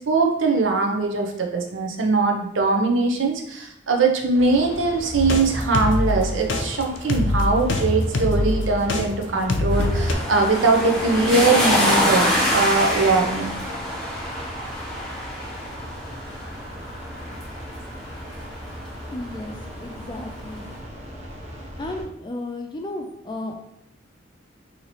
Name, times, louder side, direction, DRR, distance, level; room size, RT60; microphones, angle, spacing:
voice 1, 0.0-13.5, right 3 dB, 80° right, 2 dB, 0.7 m, -21 dB
sound 1, 4.3-22.0, equal, 35° right, 0.9 m, -38 dB
sound 2, 5.1-9.0 9.5-10.1, left 2 dB, 75° left, 0.5 m, -23 dB
sound 3, 9.7-18.8 20.1-20.2, left 1 dB, 5° left, 0.8 m, -25 dB
voice 2, 19.1-20.7 21.8-23.6, left 1 dB, 25° left, 3 dB, 0.4 m, -33 dB
2.9 x 2.8 x 4.0 m, 0.75 s
head